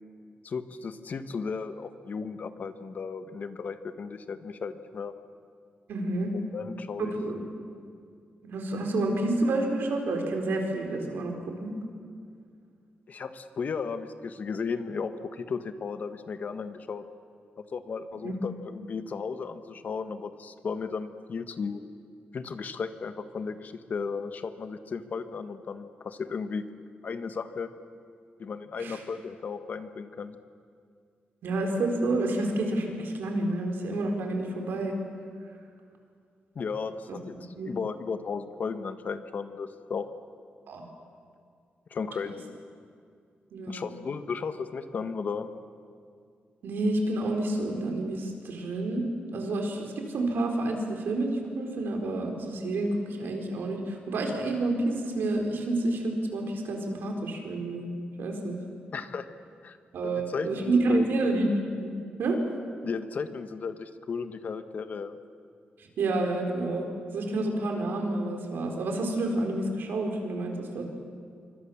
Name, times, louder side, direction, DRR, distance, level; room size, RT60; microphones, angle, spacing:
voice 1, 0.4-5.1 6.5-7.1 13.1-17.0 17.7-21.8 22.3-26.6 27.0-27.7 28.4-30.4 36.5-37.2 37.6-40.1 41.9-42.6 43.7-45.5 58.9-59.3 59.6-59.8 60.0-61.1 62.8-65.2, left 5 dB, 50° left, 10 dB, 1.4 m, -35 dB
voice 2, 5.9-6.3 7.0-7.4 8.4-11.3 11.6-11.7 18.2-18.4 28.8-29.0 31.4-35.0 37.1-37.2 37.6-37.7 40.7-40.8 43.5-43.9 46.6-57.9 58.2-58.6 59.9-61.9 62.2-62.4 66.0-66.9 67.1-70.8, right 2 dB, 85° right, 3 dB, 4.3 m, -29 dB
26.0 x 24.5 x 7.2 m, 2.3 s
wide cardioid pair, 125°, 4 cm